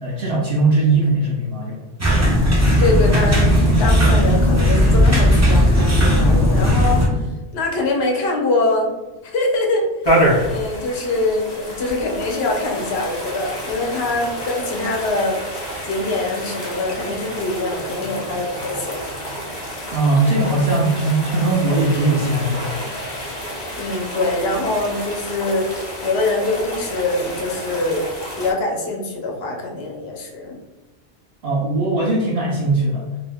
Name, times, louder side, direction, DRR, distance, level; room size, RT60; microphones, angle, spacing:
voice 1, 0.0-1.8 19.9-22.9 31.4-33.0, right 2 dB, 65° right, -5 dB, 0.8 m, -19 dB
sound 1, 2.0-7.1, equal, 20° right, 0.5 m, -15 dB
voice 2, 2.8-7.1 7.5-8.9 9.2-9.9 10.4-15.4 15.8-19.0 23.8-25.7 26.0-28.0 28.3-30.6, left 2 dB, 65° left, 1 dB, 0.9 m, -23 dB
sound 2, 10.0-28.5, equal, 30° left, 0.6 m, -28 dB
2.7 x 2.2 x 3.4 m, 1.2 s
omnidirectional pair, 1.2 m